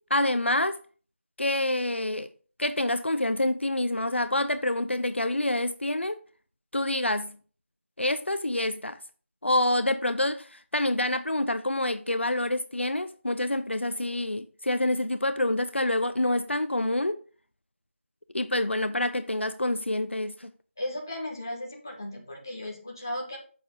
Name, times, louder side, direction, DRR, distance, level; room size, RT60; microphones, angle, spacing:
voice 1, 0.1-0.8 1.4-2.3 2.6-6.2 6.7-7.4 8.0-9.0 9.4-17.1 18.3-20.5, left 1 dB, 60° left, 0.8 m, -27 dB
voice 2, 20.8-23.4, left 1 dB, 15° left, 1.5 m, -35 dB
10.5 x 7.0 x 3.9 m
figure-of-eight pair, 180°, 7 cm